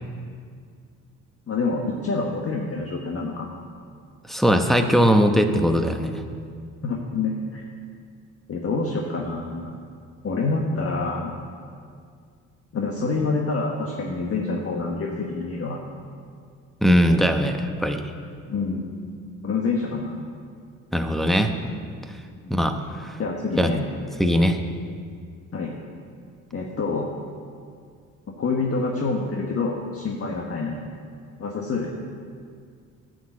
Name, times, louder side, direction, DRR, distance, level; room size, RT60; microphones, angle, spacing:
voice 1, 1.5-3.5 6.8-7.6 8.5-9.8 10.2-11.3 12.7-15.8 18.5-18.9 19.4-20.2 22.4-22.5 23.2-23.8 25.5-25.7 26.5-27.1 28.3-30.8 31.4-31.9, left 3 dB, 40° left, 0 dB, 1.3 m, -27 dB
voice 2, 4.3-6.2 16.8-18.0 20.9-21.7 22.5-22.8 23.0-23.1 23.6-23.7 24.2-24.6, equal, ahead, 5 dB, 0.9 m, -20 dB
9.6 x 6.5 x 8.5 m, 2.2 s
supercardioid pair, 80°, 34 cm